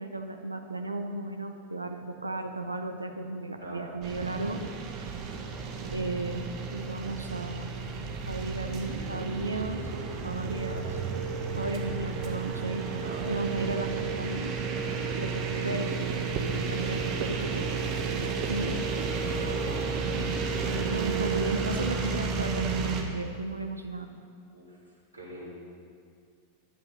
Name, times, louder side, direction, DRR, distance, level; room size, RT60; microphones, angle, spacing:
voice 1, 0.0-4.6 5.9-7.7 8.3-9.8 10.2-11.0 11.6-12.9 13.3-14.5 15.2-17.8 18.2-18.8 20.1-20.3 20.7-24.1, right 2 dB, 80° right, 6 dB, 0.7 m, -35 dB
sound 1, 4.0-23.0, right 5 dB, 40° right, 1.6 m, -32 dB
voice 2, 12.9-13.2 19.3-19.9 24.5-24.8 25.1-25.5, right 1 dB, 90° left, -6 dB, 3.8 m, -42 dB
14.5 x 11.0 x 5.6 m, 2.2 s
figure-of-eight pair, 90°, 0 cm